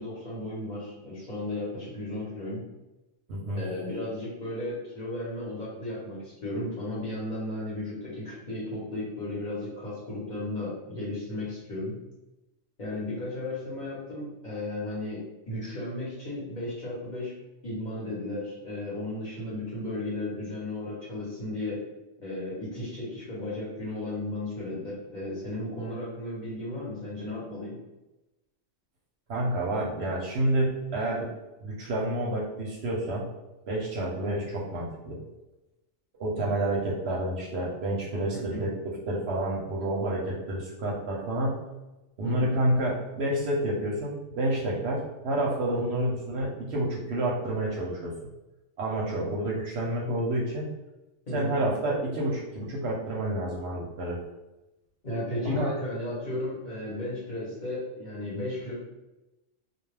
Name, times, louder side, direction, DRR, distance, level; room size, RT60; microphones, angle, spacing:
voice 1, 0.0-2.6 3.6-12.0 12.8-17.3 17.6-21.8 22.2-27.8 38.3-38.7 42.2-42.5 45.7-45.8 51.3-51.6 55.0-58.7, left 1 dB, 40° left, -7 dB, 1.0 m, -34 dB
voice 2, 3.3-3.6 29.3-31.3 31.6-33.3 33.7-35.2 36.2-38.7 39.1-41.7 42.2-48.1 48.8-50.7 51.3-54.2 55.4-55.7, right 1 dB, 65° right, -3 dB, 0.8 m, -29 dB
2.3 x 2.2 x 3.2 m, 1.0 s
omnidirectional pair, 1.3 m